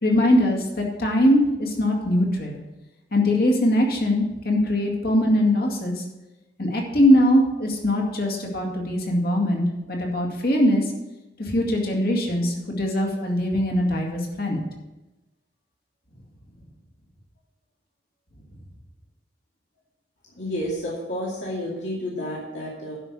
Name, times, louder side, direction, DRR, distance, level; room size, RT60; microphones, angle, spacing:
voice 1, 0.0-2.6 3.1-5.9 6.6-10.9 11.4-14.6, left 1 dB, 55° left, 0 dB, 2.1 m, -21 dB
voice 2, 20.3-23.0, equal, 75° left, -6 dB, 2.5 m, -30 dB
11.5 x 5.5 x 6.8 m, 1.0 s
head